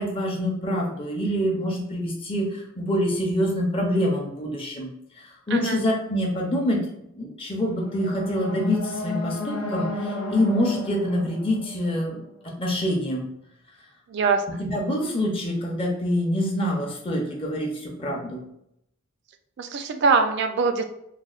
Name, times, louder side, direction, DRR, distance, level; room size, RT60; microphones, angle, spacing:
voice 1, 0.0-4.9 5.2-6.8 7.1-13.3 14.6-18.4, equal, 25° left, -1 dB, 0.5 m, -26 dB
voice 2, 5.5-5.8 14.1-14.4 19.6-20.8, right 4 dB, 55° right, 7 dB, 0.3 m, -22 dB
sound 1, 7.5-12.6, left 2 dB, 90° left, 0.5 m, -33 dB
4.0 x 2.0 x 2.3 m, 0.77 s
head